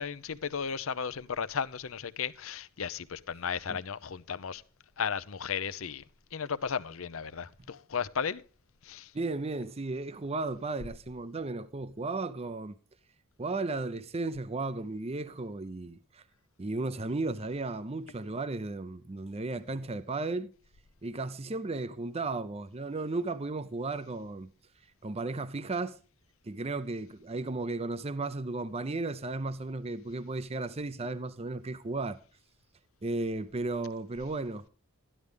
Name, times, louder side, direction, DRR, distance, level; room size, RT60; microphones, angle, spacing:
voice 1, 0.0-4.6 5.0-6.0 6.3-8.4 8.8-9.1, left 6 dB, 70° left, 0.7 m, -35 dB
voice 2, 9.1-12.7 13.4-16.2 16.6-20.5 21.0-24.5 25.0-26.0 26.4-32.2 33.0-34.6, right 3 dB, 30° right, 0.6 m, -34 dB
13.0 x 11.0 x 3.4 m
head